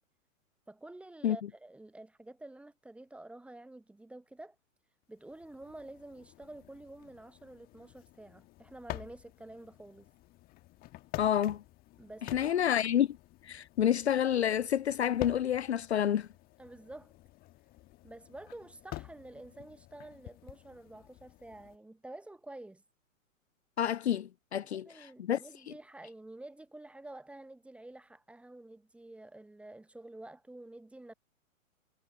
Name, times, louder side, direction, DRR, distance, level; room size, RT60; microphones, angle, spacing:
voice 1, 0.7-4.6 5.1-10.1 12.0-12.7 16.6-17.1 18.0-22.8 24.7-31.1, right 2 dB, 5° right, 1.2 m, -49 dB
sound 1, 5.2-21.8, left 18 dB, 20° left, 1.6 m, -49 dB
voice 2, 11.2-11.6 12.3-13.1 13.4-16.3 23.8-25.4, left 10 dB, 55° left, 0.7 m, -29 dB
figure-of-eight pair, 110°, 41 cm